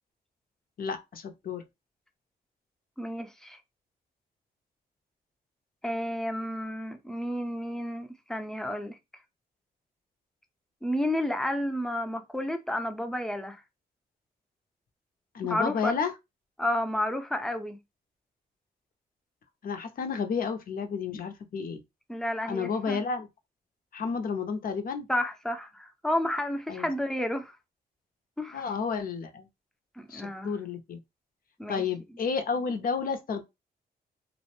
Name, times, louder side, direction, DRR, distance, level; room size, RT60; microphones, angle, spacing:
voice 1, 0.8-1.6 15.3-16.1 19.6-21.8 22.5-23.3 23.9-25.1 26.7-26.9 28.5-29.5 30.1-31.0 31.7-33.4, left 5 dB, 60° left, 0.6 m, -31 dB
voice 2, 3.0-3.6 5.8-9.0 10.8-13.6 15.4-15.9 16.6-17.8 22.1-23.0 25.1-27.6 28.4-28.7 30.0-30.5 31.6-31.8, left 1 dB, 5° left, 0.5 m, -31 dB
2.5 x 2.0 x 2.9 m
cardioid pair, 70°, 17 cm